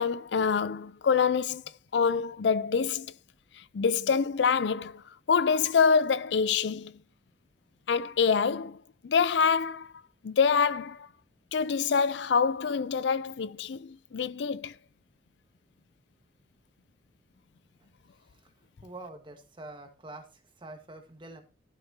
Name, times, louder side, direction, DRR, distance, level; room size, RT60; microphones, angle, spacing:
voice 1, 0.0-1.6 1.9-3.1 3.6-5.0 5.3-6.9 7.9-9.9 10.2-11.1 11.5-14.7, left 6 dB, 85° left, 0.4 m, -26 dB
voice 2, 18.8-20.3 20.6-21.4, right 2 dB, 30° right, 1.6 m, -45 dB
12.0 x 8.2 x 2.8 m
head